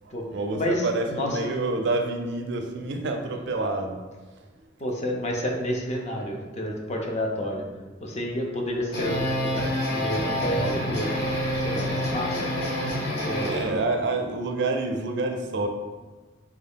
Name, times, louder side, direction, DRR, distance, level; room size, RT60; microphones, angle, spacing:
voice 1, 0.0-4.0 13.4-15.7, right 2 dB, 60° right, 4 dB, 0.4 m, -28 dB
voice 2, 0.5-1.4 4.8-7.7 8.0-12.4 13.2-13.5, equal, 35° left, 0 dB, 0.5 m, -30 dB
sound 1, 8.7-13.8, equal, 55° left, 0.9 m, -27 dB
3.5 x 2.3 x 3.5 m, 1.3 s
head